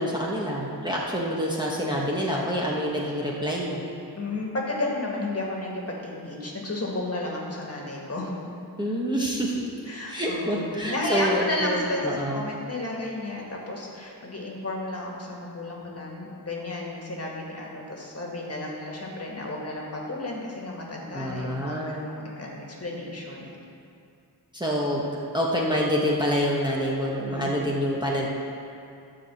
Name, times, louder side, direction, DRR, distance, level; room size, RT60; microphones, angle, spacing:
voice 1, 0.0-3.8 8.8-9.6 10.1-12.4 21.1-22.1 24.5-25.0 25.3-28.3, equal, 10° right, -4 dB, 1.1 m, -27 dB
voice 2, 4.2-8.3 9.8-23.6 27.3-27.5, left 2 dB, 35° left, -2 dB, 1.8 m, -32 dB
11.5 x 4.8 x 7.5 m, 2.5 s
wide cardioid pair, 120°, 40 cm